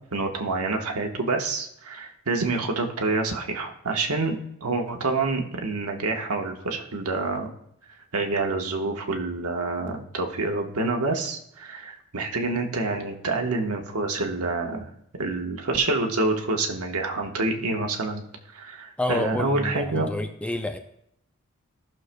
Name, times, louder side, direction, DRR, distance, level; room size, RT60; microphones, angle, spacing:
voice 1, 0.1-7.5 8.1-14.9 15.1-18.2 18.5-20.1, right 3 dB, 85° right, 3 dB, 1.2 m, -27 dB
voice 2, 19.0-20.8, left 1 dB, 5° left, 6 dB, 0.4 m, -29 dB
15.5 x 6.5 x 2.2 m, 0.74 s
head